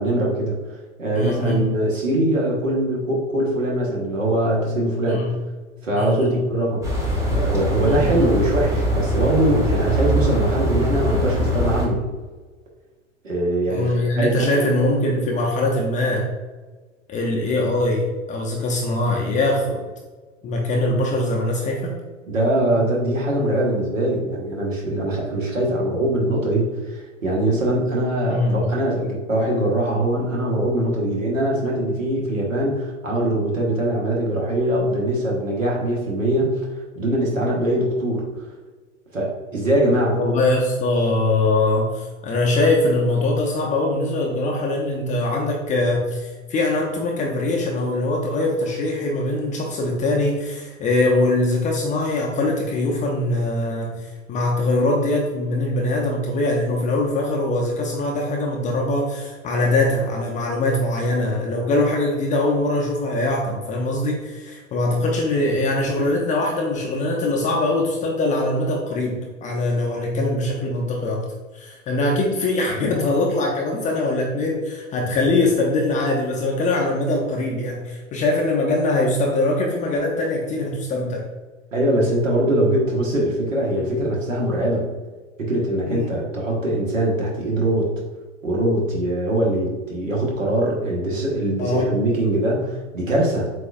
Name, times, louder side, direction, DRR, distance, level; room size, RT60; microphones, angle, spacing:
voice 1, 0.0-5.3 5.8-6.9 7.3-12.0 13.2-14.5 22.3-38.5 39.1-40.2 81.7-84.9 85.4-87.9 88.4-93.5, right 1 dB, 80° right, -2 dB, 1.4 m, -22 dB
voice 2, 1.1-1.7 5.1-5.3 5.9-6.4 7.8-8.2 13.7-16.3 17.1-19.8 20.4-21.9 28.3-28.7 40.2-71.2 71.5-81.2 85.8-86.1 91.6-91.9, left 2 dB, 20° left, -1 dB, 0.5 m, -22 dB
sound 1, 6.8-11.9, equal, 10° right, 0.9 m, -22 dB
7.6 x 2.5 x 2.4 m, 1.3 s
figure-of-eight pair, 95°, 38 cm